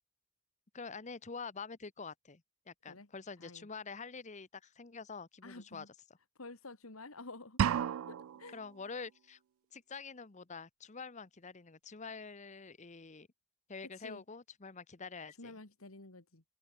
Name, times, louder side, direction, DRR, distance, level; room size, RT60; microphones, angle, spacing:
voice 1, 0.7-5.9 8.5-9.4 9.7-13.3 13.7-15.5, left 5 dB, 35° left, 0.9 m, -46 dB
voice 2, 5.4-5.9 6.4-7.6 8.1-8.6 14.0-14.2 15.4-16.4, left 3 dB, 85° left, 2.4 m, -50 dB
sound 1, 7.6-8.6, right 8 dB, 80° right, 0.3 m, -32 dB
open air
head